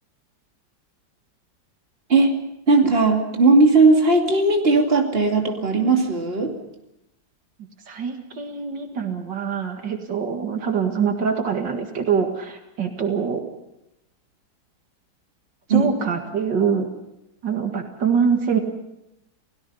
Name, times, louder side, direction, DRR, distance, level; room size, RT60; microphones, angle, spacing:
voice 1, 2.7-6.5 15.7-15.9, right 3 dB, 30° right, 2 dB, 2.7 m, -17 dB
voice 2, 7.9-13.4 15.7-16.9 17.4-18.6, right 6 dB, 75° right, 4 dB, 2.5 m, -24 dB
29.5 x 17.5 x 5.6 m, 0.85 s
omnidirectional pair, 2.0 m